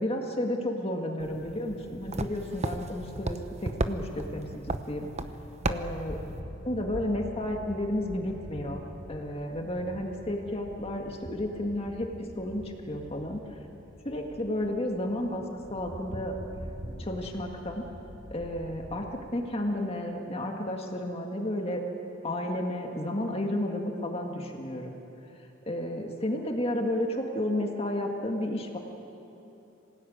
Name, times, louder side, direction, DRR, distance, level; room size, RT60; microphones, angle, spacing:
voice 1, 0.0-5.1 5.7-6.2 6.6-12.1 12.4-13.4 14.0-15.4 15.7-16.4 17.0-17.8 18.3-19.1 19.3-21.8 22.2-25.0 25.7-28.8, left 1 dB, 30° left, 2 dB, 1.9 m, -32 dB
sound 1, 1.2-6.4, right 2 dB, 35° right, 1.0 m, -35 dB
sound 2, 5.3-19.1, equal, 60° right, 4.7 m, -45 dB
26.5 x 18.0 x 9.4 m, 3.0 s
head